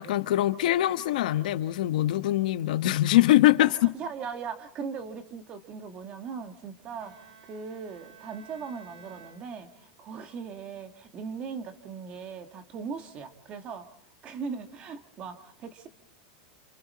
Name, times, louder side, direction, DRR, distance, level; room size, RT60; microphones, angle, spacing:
voice 1, 0.0-3.9, left 15 dB, 75° left, 1.2 m, -23 dB
voice 2, 3.6-13.9 14.2-15.9, right 5 dB, 25° right, 1.4 m, -39 dB
Bowed string instrument, 7.0-10.1, right 7 dB, 90° right, 6.1 m, -54 dB
28.5 x 28.0 x 4.2 m
supercardioid pair, 165°, 4 cm